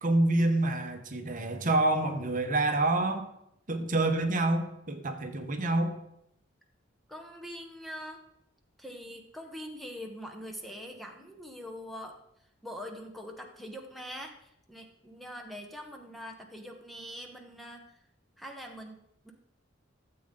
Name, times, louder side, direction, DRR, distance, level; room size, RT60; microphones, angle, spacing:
voice 1, 0.0-3.2 3.7-6.0, right 2 dB, 45° right, 6 dB, 1.0 m, -27 dB
voice 2, 7.1-8.2 8.8-12.1 12.6-17.9 18.4-19.0 19.2-19.3, equal, ahead, 2 dB, 0.9 m, -43 dB
13.5 x 7.7 x 3.7 m, 0.79 s
head